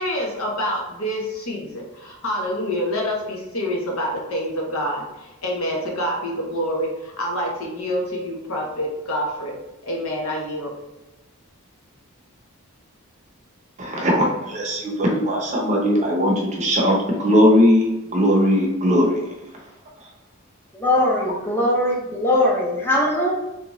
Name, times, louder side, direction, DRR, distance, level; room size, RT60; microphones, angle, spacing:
voice 1, 0.0-9.5 9.8-10.7, equal, 70° left, -1 dB, 0.9 m, -27 dB
voice 2, 13.8-19.2, equal, 30° right, -1 dB, 0.7 m, -19 dB
voice 3, 20.7-23.3, left 1 dB, 10° left, -3 dB, 0.5 m, -20 dB
3.4 x 2.8 x 3.0 m, 1.0 s
head